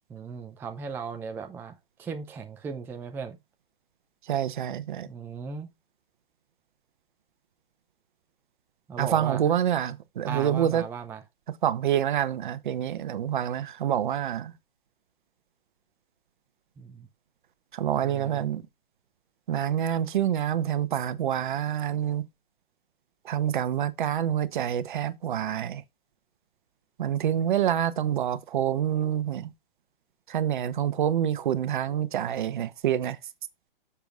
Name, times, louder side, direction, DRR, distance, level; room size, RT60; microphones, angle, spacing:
voice 1, 0.1-3.4 5.0-5.7 8.9-9.4 10.3-11.2 16.8-17.1 18.0-18.5, right 5 dB, 5° right, 0.5 m, -37 dB
voice 2, 4.3-5.1 9.0-10.8 11.6-14.5 17.7-18.6 19.5-22.2 23.2-25.8 27.0-29.5 30.3-33.2, right 10 dB, 55° right, 1.0 m, -27 dB
10.0 x 7.1 x 2.4 m
hypercardioid pair, 125°, 29 cm